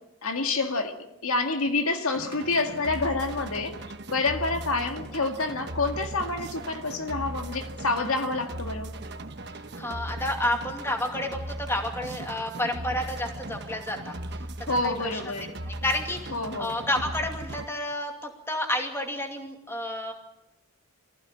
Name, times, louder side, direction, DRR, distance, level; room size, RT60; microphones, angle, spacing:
voice 1, 0.2-1.0 1.2-3.7 4.1-8.9 14.7-15.5 16.3-16.8, left 3 dB, 85° left, 6 dB, 2.0 m, -28 dB
sound 1, 2.1-17.7, right 1 dB, 50° right, 1.2 m, -38 dB
voice 2, 9.8-14.1 14.8-15.2 15.7-16.3 16.6-20.1, left 1 dB, 10° left, 3 dB, 2.5 m, -30 dB
24.0 x 15.5 x 8.9 m, 0.93 s
head